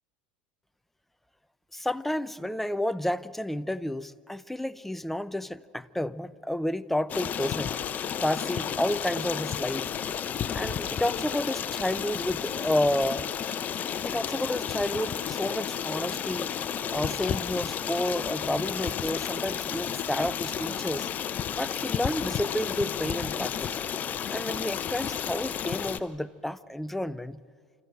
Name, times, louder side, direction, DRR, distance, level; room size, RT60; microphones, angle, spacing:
voice 1, 1.7-7.8 8.2-9.9 10.5-13.3 14.0-16.5 16.9-21.1 21.6-23.8 24.3-27.4, left 1 dB, 5° left, 0.6 m, -30 dB
Stream, 7.1-26.0, left 8 dB, 35° left, 0.9 m, -32 dB
28.5 x 14.0 x 7.8 m
hypercardioid pair, 90°, 5 cm